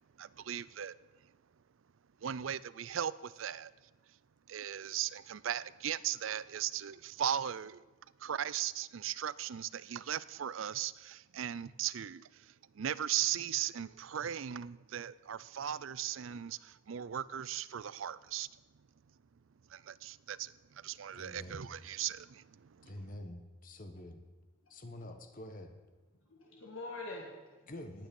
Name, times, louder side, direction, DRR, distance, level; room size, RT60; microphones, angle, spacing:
voice 1, 0.2-0.9 1.2-1.3 2.2-3.7 4.1-4.2 4.5-7.8 8.2-18.5 19.7-23.0, right 10 dB, 75° right, 0.4 m, -38 dB
voice 2, 21.1-21.6 22.8-24.2 24.7-25.8 27.7-28.1, left 1 dB, 40° left, 1.3 m, -47 dB
voice 3, 24.6-25.1 26.2-27.7, left 2 dB, 80° left, 1.8 m, -46 dB
19.0 x 9.1 x 5.4 m
head